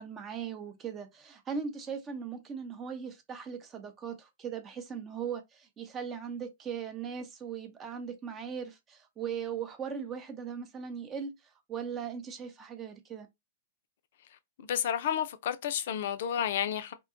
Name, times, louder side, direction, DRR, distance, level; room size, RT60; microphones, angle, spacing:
voice 1, 0.0-11.3 11.7-13.3, right 7 dB, 25° right, 0.6 m, -39 dB
voice 2, 14.6-16.9, left 9 dB, 65° left, 0.4 m, -31 dB
2.8 x 2.2 x 2.5 m
hypercardioid pair, 125°, 0 cm